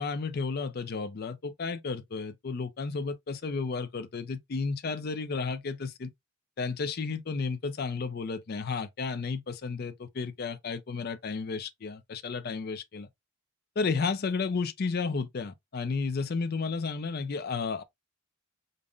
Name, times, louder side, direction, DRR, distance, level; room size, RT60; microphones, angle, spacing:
voice 1, 0.0-6.1 6.6-13.1 13.8-17.8, left 4 dB, 50° left, 0.5 m, -32 dB
5.2 x 2.1 x 2.4 m
head